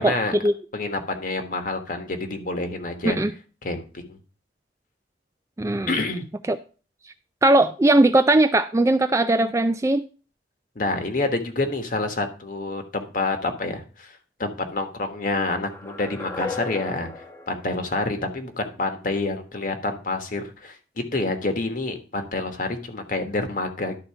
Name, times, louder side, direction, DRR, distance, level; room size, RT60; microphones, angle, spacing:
voice 1, 0.0-0.3 0.7-3.2 3.6-4.2 5.9-6.3 10.7-24.0, left 2 dB, 50° left, 6 dB, 1.4 m, -28 dB
voice 2, 5.6-5.9 6.5-6.6 7.4-10.0, right 2 dB, 15° right, 9 dB, 0.3 m, -19 dB
sound 1, 15.5-18.6, left 3 dB, 15° left, 1.0 m, -36 dB
11.5 x 4.1 x 5.6 m, 0.36 s
head